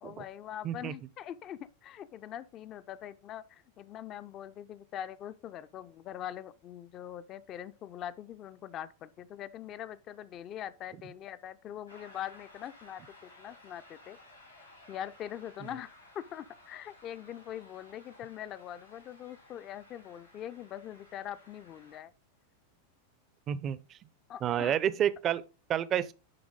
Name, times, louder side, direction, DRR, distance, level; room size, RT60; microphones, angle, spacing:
voice 1, 0.0-14.2 14.9-22.1 24.3-24.8, left 11 dB, 35° left, 0.4 m, -43 dB
voice 2, 0.6-0.9 23.5-23.8 24.4-25.4 25.7-26.1, right 10 dB, 30° right, 0.5 m, -29 dB
sound 1, 11.9-22.0, left 2 dB, 85° left, 3.5 m, -57 dB
10.5 x 3.7 x 3.6 m
figure-of-eight pair, 90°, 0 cm